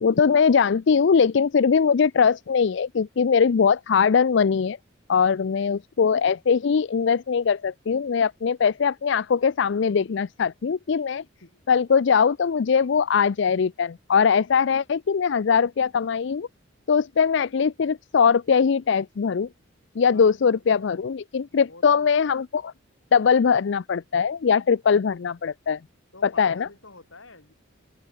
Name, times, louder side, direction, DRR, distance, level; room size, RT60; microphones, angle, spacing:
voice 1, 0.0-4.8 5.1-11.2 11.7-16.5 16.9-19.5 20.0-22.7 23.1-25.8 26.2-26.7, left 6 dB, 60° left, 0.4 m, -21 dB
voice 2, 20.1-20.9 21.5-22.1 26.1-27.5, left 3 dB, 75° left, 5.6 m, -47 dB
head